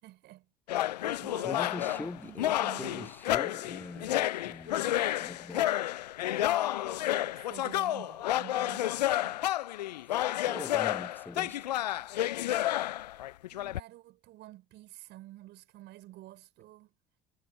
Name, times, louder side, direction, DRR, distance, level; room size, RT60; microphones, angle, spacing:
voice 1, 0.0-3.1 6.8-9.5 11.0-11.1 11.4-11.9 13.5-16.9, right 16 dB, 60° right, 5.2 m, -50 dB
sound 1, 0.7-13.8, left 14 dB, 85° left, 0.4 m, -30 dB
voice 2, 1.4-5.7 10.0-11.6, left 2 dB, 10° left, 0.9 m, -43 dB
hypercardioid pair, 70°, 20 cm